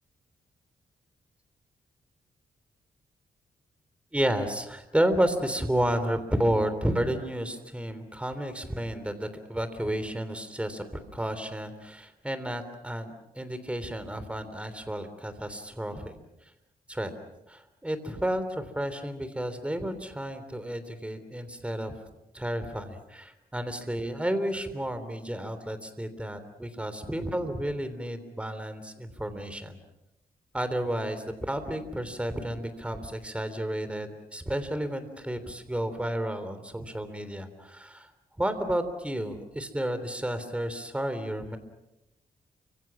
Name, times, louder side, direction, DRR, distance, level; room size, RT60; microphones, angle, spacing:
voice 1, 4.1-16.2 16.9-17.1 17.5-22.0 22.3-29.8 30.5-38.1 38.4-41.6, right 1 dB, 10° right, 10 dB, 3.4 m, -31 dB
30.0 x 26.0 x 6.2 m, 0.90 s
cardioid pair, 110°, 15 cm